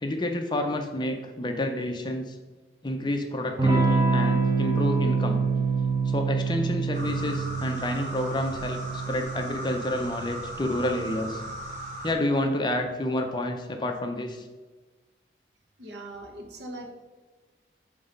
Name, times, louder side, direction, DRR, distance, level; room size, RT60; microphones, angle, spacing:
voice 1, 0.0-2.4 2.8-5.4 6.1-11.4 12.0-14.5, left 1 dB, 25° left, 4 dB, 0.5 m, -29 dB
Electric guitar / Strum, 3.6-11.9, right 4 dB, 20° right, 0.7 m, -27 dB
sound 1, 6.9-12.1, right 1 dB, 45° right, 1.6 m, -38 dB
voice 2, 15.8-16.9, right 1 dB, 70° right, 3 dB, 1.0 m, -40 dB
6.0 x 3.9 x 5.2 m, 1.3 s
head